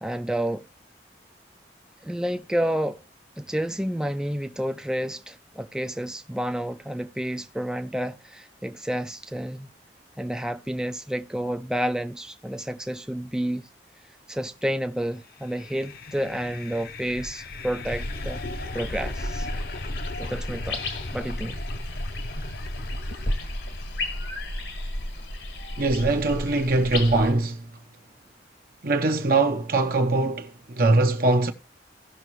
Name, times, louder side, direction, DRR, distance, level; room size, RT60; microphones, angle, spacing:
voice 1, 0.0-0.7 2.0-3.0 3.4-9.7 10.2-13.7 14.3-18.4 18.7-19.5 20.2-20.8 21.1-21.6, right 1 dB, 5° right, 0.5 m, -30 dB
sound 1, 15.3-24.5, left 3 dB, 55° left, 0.8 m, -38 dB
sound 2, 17.8-27.3, left 1 dB, 75° left, 1.8 m, -33 dB
voice 2, 25.8-27.7 28.8-31.5, right 2 dB, 55° right, 0.8 m, -22 dB
16.5 x 6.0 x 3.1 m
head